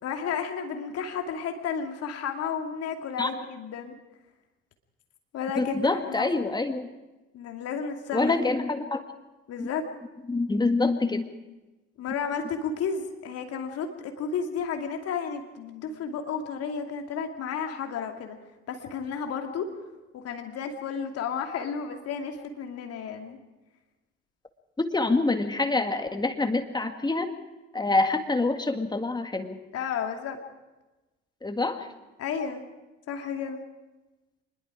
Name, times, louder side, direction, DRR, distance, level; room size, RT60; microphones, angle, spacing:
voice 1, 0.0-3.9 5.3-6.5 7.3-8.6 9.5-9.8 12.0-18.4 18.7-19.7 20.1-23.4 29.7-30.4 32.2-32.6 33.1-33.6, left 6 dB, 50° left, 4 dB, 2.7 m, -32 dB
voice 2, 5.6-6.9 8.1-9.0 9.6-9.7 10.3-11.2 24.8-27.3 27.7-29.6 31.4-31.9, left 3 dB, 15° left, 7 dB, 1.9 m, -26 dB
25.0 x 21.0 x 5.0 m, 1.1 s
figure-of-eight pair, 55°, 31 cm